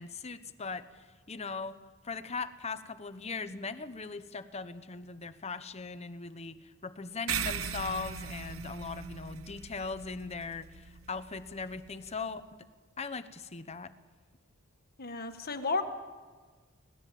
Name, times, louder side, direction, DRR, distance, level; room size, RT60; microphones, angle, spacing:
voice 1, 0.0-1.8 2.0-12.6 13.0-13.9, left 4 dB, 30° left, 11 dB, 0.9 m, -39 dB
sound 1, 7.3-12.1, right 7 dB, 70° right, 1.0 m, -39 dB
voice 2, 15.0-15.8, left 3 dB, 45° left, 6 dB, 1.6 m, -32 dB
25.0 x 18.0 x 7.6 m, 1.4 s
head